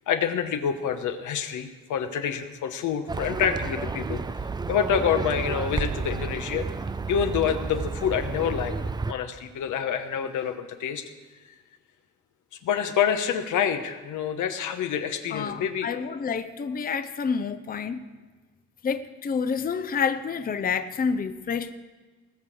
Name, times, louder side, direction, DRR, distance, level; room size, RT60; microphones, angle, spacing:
voice 1, 0.1-4.2 4.7-6.7 7.1-8.7 9.1-11.0 12.6-15.9, left 8 dB, 75° left, 7 dB, 1.2 m, -27 dB
Livestock farm animals working animals, 3.1-9.1, right 4 dB, 15° right, 0.3 m, -31 dB
voice 2, 15.8-18.0 18.8-21.7, left 6 dB, 30° left, 10 dB, 0.6 m, -28 dB
19.0 x 6.8 x 6.2 m, 1.3 s
cardioid pair, 90°, 30 cm